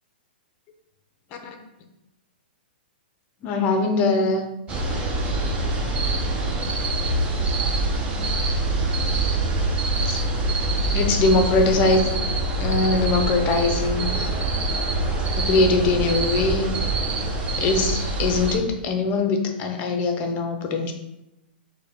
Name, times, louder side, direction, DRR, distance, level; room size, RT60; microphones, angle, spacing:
voice 1, 3.4-4.4 10.1-10.2 10.9-12.1 12.6-14.3 15.4-16.8 17.6-20.9, left 3 dB, 30° left, 5 dB, 0.6 m, -22 dB
sound 1, 4.7-18.6, right 2 dB, 20° right, 0.5 m, -24 dB
5.4 x 2.2 x 3.4 m, 0.90 s
hypercardioid pair, 145°, 6 cm